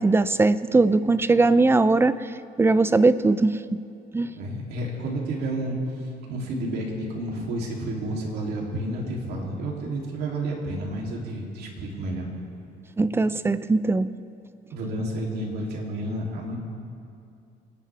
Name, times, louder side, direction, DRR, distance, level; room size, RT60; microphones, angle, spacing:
voice 1, 0.0-2.2 2.6-3.6 4.1-4.3 13.0-14.1, right 3 dB, 15° right, 14 dB, 0.5 m, -20 dB
voice 2, 4.3-5.7 6.3-12.3 14.7-16.6, right 1 dB, 75° right, -2 dB, 3.2 m, -30 dB
29.0 x 10.0 x 3.5 m, 2.6 s
cardioid pair, 110°, 17 cm